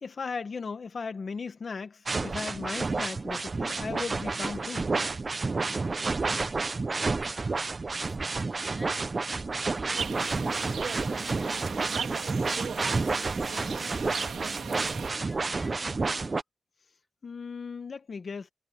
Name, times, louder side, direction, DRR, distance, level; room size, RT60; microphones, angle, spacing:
voice 1, 0.0-4.9 17.2-18.5, left 5 dB, 45° left, 1.3 m, -37 dB
sound 1, 2.1-16.4, right 3 dB, 30° right, 0.4 m, -30 dB
voice 2, 6.9-13.9 14.4-16.3, left 1 dB, 5° left, 2.6 m, -53 dB
sound 2, 9.9-15.1, right 6 dB, 85° right, 1.8 m, -37 dB
wide cardioid pair, 165°, 0 cm